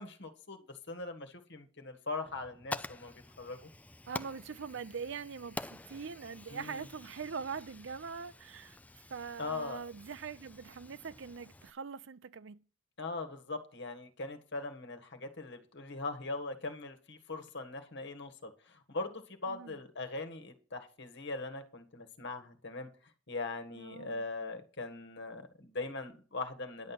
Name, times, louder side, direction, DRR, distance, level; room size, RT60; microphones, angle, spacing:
voice 1, 0.0-3.7 6.5-6.9 9.4-9.8 13.0-22.9 23.3-26.9, left 3 dB, 60° left, 1.7 m, -41 dB
Fire, 2.3-11.7, left 2 dB, 10° left, 0.4 m, -47 dB
voice 2, 4.1-8.8 9.1-12.6 19.5-19.8 23.8-24.2, right 5 dB, 65° right, 0.6 m, -42 dB
10.5 x 7.6 x 5.9 m
head